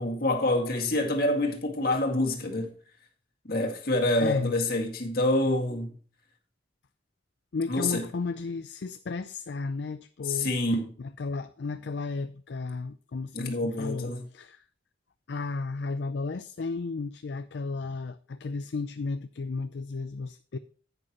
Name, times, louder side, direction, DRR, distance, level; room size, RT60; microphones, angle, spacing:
voice 1, 0.0-2.7 3.4-5.9 7.7-8.0 10.3-10.9 13.3-14.3, left 1 dB, 50° left, 2.0 m, -27 dB
voice 2, 4.2-4.5 7.5-10.6 11.0-14.6 15.3-20.6, left 3 dB, 65° left, 0.4 m, -34 dB
10.5 x 8.9 x 3.0 m
head